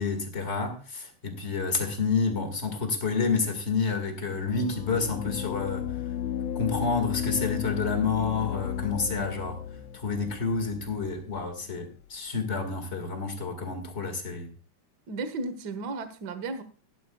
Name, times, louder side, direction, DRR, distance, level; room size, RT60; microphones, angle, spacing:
voice 1, 0.0-5.8 6.5-9.6 9.9-14.5, left 4 dB, 25° left, 6 dB, 1.6 m, -29 dB
sound 1, 4.3-11.5, left 10 dB, 80° left, 1.5 m, -34 dB
voice 2, 15.1-16.6, right 3 dB, 55° right, 10 dB, 1.1 m, -34 dB
15.5 x 11.5 x 2.3 m, 0.38 s
omnidirectional pair, 3.6 m